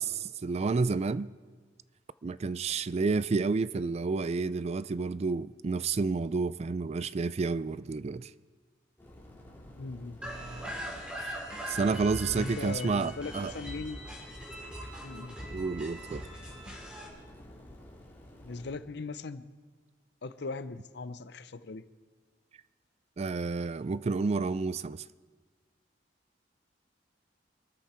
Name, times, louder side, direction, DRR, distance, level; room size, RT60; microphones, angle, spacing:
voice 1, 0.0-1.3 2.2-8.3 11.2-11.4 11.7-13.5 15.5-16.2 23.2-25.0, right 4 dB, 35° right, 0.4 m, -30 dB
sound 1, 9.0-18.7, equal, 10° left, 3.4 m, -51 dB
voice 2, 9.7-10.2 12.3-14.0 15.0-15.4 18.4-19.4 20.2-21.8, left 3 dB, 65° left, 0.7 m, -39 dB
sound 2, 10.2-17.1, equal, 5° right, 3.5 m, -41 dB
23.5 x 13.5 x 4.4 m
head